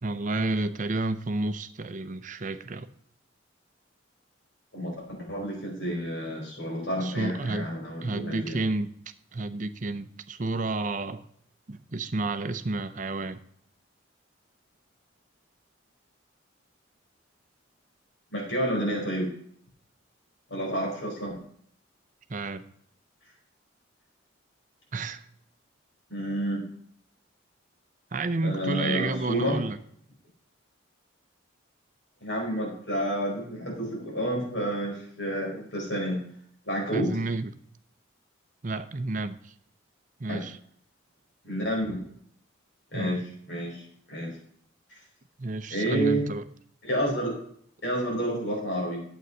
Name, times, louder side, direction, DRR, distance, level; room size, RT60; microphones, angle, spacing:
voice 1, 0.0-2.9 7.0-7.7 8.0-8.9 9.3-11.2 11.7-13.4 22.3-22.6 24.9-25.3 28.1-29.8 36.9-37.5 38.6-39.5 40.2-40.6 42.9-43.2 45.4-46.4, right 2 dB, 40° right, 12 dB, 0.6 m, -30 dB
voice 2, 4.7-8.6 18.3-19.3 20.5-21.4 26.1-26.6 28.4-29.6 32.2-36.2 36.6-37.2 40.3-40.4 41.4-42.0 42.9-43.2 43.5-43.8 44.1-44.3 45.7-46.3 46.8-47.3 47.8-49.0, equal, 60° left, -2 dB, 4.6 m, -29 dB
9.2 x 8.0 x 5.3 m, 0.64 s
head